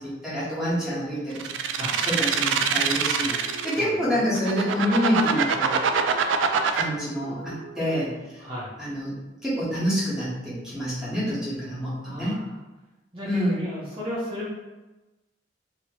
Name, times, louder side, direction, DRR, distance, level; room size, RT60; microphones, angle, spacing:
voice 1, 0.2-1.8 2.0-5.8 6.7-8.4 8.8-9.1 9.4-12.4 13.2-13.6, equal, 5° right, -10 dB, 1.4 m, -27 dB
Transformation Morphing, 1.4-3.8 4.3-6.8, right 6 dB, 85° right, 0.3 m, -24 dB
sound 1, 3.3-8.1, right 2 dB, 30° left, 0.7 m, -45 dB
voice 2, 3.8-4.2 8.4-8.7 12.0-12.4 13.1-14.6, equal, 30° right, -10 dB, 1.0 m, -35 dB
3.0 x 2.9 x 3.0 m, 1.1 s
head